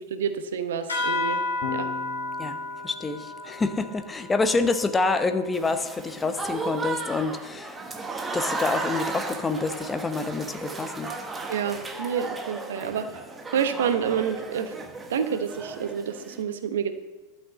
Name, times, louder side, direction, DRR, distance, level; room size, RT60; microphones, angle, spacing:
voice 1, 0.0-1.4 1.7-1.9 11.5-13.1 13.5-14.7 15.1-16.9, right 8 dB, 60° right, 9 dB, 1.0 m, -28 dB
sound 1, 0.9-5.8, left 2 dB, 70° left, 2.7 m, -32 dB
Electric guitar / Bass guitar, 1.6-8.0, left 8 dB, 50° left, 1.3 m, -43 dB
voice 2, 2.4-7.8 8.3-11.1, left 3 dB, 15° left, 9 dB, 0.9 m, -27 dB
Applause / Crowd, 5.5-16.4, right 3 dB, 15° right, 1.3 m, -35 dB
12.0 x 6.3 x 8.0 m, 1.1 s
figure-of-eight pair, 90°, 0 cm